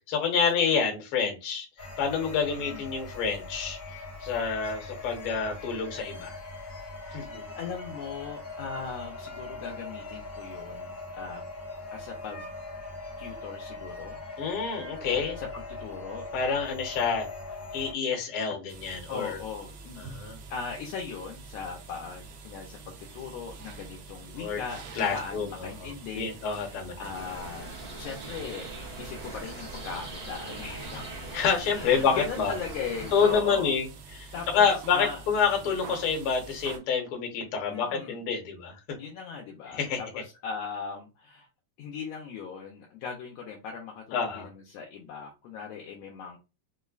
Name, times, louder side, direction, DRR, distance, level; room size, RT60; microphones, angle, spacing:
voice 1, 0.1-1.7 2.0-3.8 4.2-6.4 7.1-7.4 14.4-15.4 16.3-17.3 17.7-19.4 20.0-20.4 24.4-24.6 24.9-25.9 26.1-27.1 31.3-32.5 33.1-33.9 34.1-38.7 39.7-40.0 44.1-44.5, left 6 dB, 60° left, 1 dB, 1.5 m, -28 dB
sound 1, 1.8-17.9, left 2 dB, 45° left, 0.6 m, -41 dB
voice 2, 2.5-2.9 4.4-4.5 7.0-7.1 7.6-11.4 11.9-12.5 13.2-14.2 15.4-16.3 19.1-20.1 20.5-28.7 29.0-31.1 31.7-33.8 34.3-34.7 34.9-35.2 37.7-38.2 39.0-41.5 41.8-46.4, left 5 dB, 80° left, 1 dB, 1.5 m, -39 dB
sound 2, 18.7-36.8, right 4 dB, 75° right, 1.6 m, -46 dB
sound 3, 27.1-33.4, right 2 dB, 50° right, 0.7 m, -41 dB
5.3 x 2.1 x 2.3 m, 0.28 s
omnidirectional pair, 3.4 m